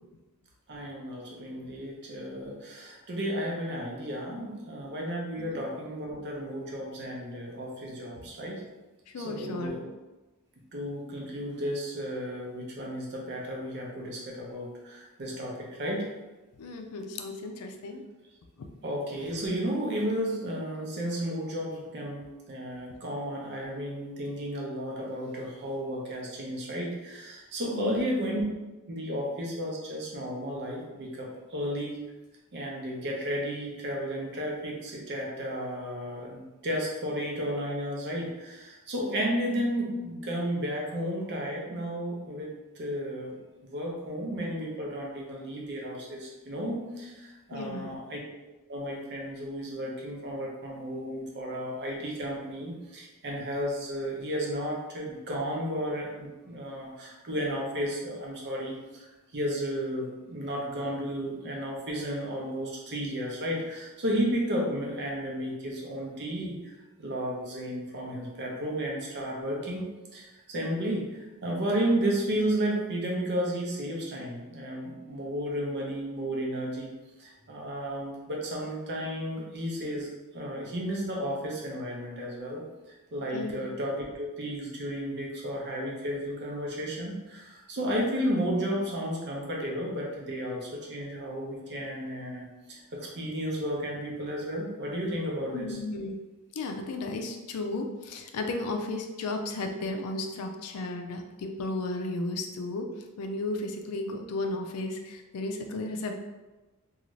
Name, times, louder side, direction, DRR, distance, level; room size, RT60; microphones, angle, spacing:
voice 1, 0.7-8.6 9.2-9.8 10.7-16.1 18.8-28.4 28.9-32.0 32.5-48.2 48.7-66.7 67.0-69.8 70.1-76.9 77.2-82.6 83.1-95.8, equal, 50° right, -2 dB, 0.7 m, -33 dB
voice 2, 9.1-9.8 16.6-18.0 18.6-18.7 27.7-28.0 47.5-48.0 83.3-83.6 95.5-96.2 96.5-102.9 103.2-106.2, left 2 dB, 80° left, 4 dB, 0.4 m, -34 dB
2.5 x 2.4 x 3.1 m, 1.1 s
head